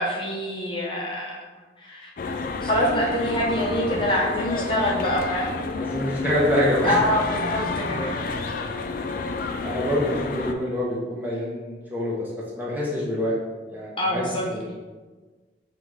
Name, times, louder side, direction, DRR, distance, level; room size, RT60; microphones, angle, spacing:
voice 1, 0.0-2.1 2.6-5.5 6.8-8.1 14.0-14.5, equal, 30° left, -3 dB, 0.7 m, -25 dB
sound 1, 2.2-10.5, left 3 dB, 50° left, 0.3 m, -30 dB
voice 2, 5.7-7.0 8.0-8.2 9.6-12.3 12.6-13.4 13.7-14.2 14.5-14.6, left 1 dB, 10° right, -6 dB, 0.6 m, -26 dB
5.7 x 2.4 x 3.2 m, 1.3 s
head